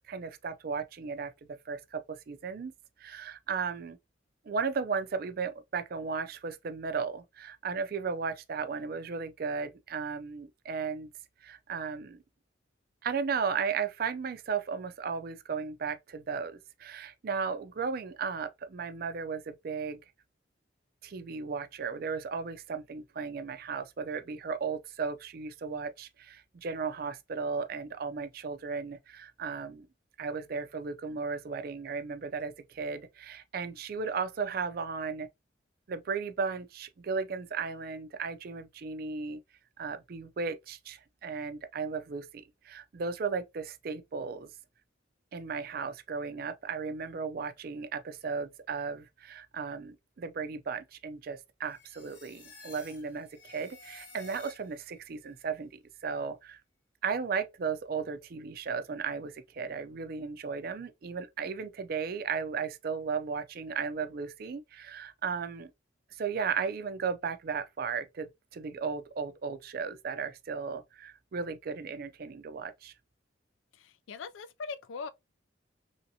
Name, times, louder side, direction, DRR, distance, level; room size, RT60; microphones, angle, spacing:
voice 1, 0.1-2.7 3.0-4.0 4.5-11.1 11.4-12.2 13.0-20.0 21.0-29.9 30.2-35.3 35.9-39.4 39.8-44.5 45.3-55.7 56.0-56.6 57.0-65.7 66.1-72.9, right 5 dB, 50° right, 0.4 m, -35 dB
sound 1, 51.6-55.0, left 3 dB, 50° left, 0.9 m, -53 dB
voice 2, 73.7-75.1, left 5 dB, 80° left, 0.4 m, -41 dB
3.1 x 2.7 x 2.7 m
head